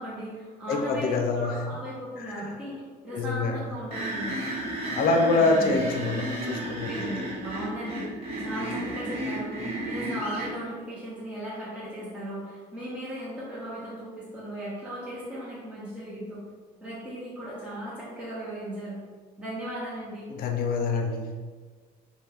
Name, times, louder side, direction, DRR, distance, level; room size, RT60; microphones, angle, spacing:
voice 1, 0.0-4.4 5.3-5.8 6.8-8.1 8.4-16.4 16.8-19.0 19.4-20.3, equal, 10° right, -9 dB, 0.9 m, -37 dB
voice 2, 0.7-1.5 3.1-3.6 5.0-6.9 20.4-21.3, left 3 dB, 60° left, 4 dB, 0.5 m, -25 dB
sound 1, 3.9-10.5, right 1 dB, 35° right, 1.1 m, -33 dB
2.8 x 2.2 x 3.5 m, 1.5 s
cardioid pair, 110°, 17 cm